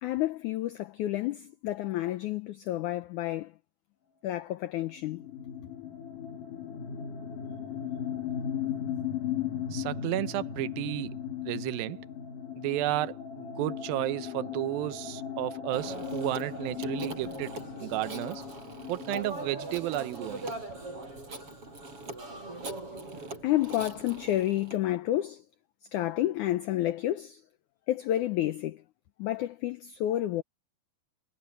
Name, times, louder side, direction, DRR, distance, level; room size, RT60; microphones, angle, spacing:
voice 1, 0.0-3.5 4.2-5.3 23.4-25.4 25.9-27.4 27.9-28.8 29.2-30.4, left 14 dB, 75° left, 1.8 m, -30 dB
sound 1, 5.0-20.6, left 9 dB, 60° left, 3.1 m, -37 dB
voice 2, 9.7-11.2 11.5-12.0 12.6-18.4 18.9-20.5, right 16 dB, 75° right, 2.4 m, -32 dB
Telephone, 15.7-24.8, right 2 dB, 35° right, 8.0 m, -41 dB
omnidirectional pair, 4.4 m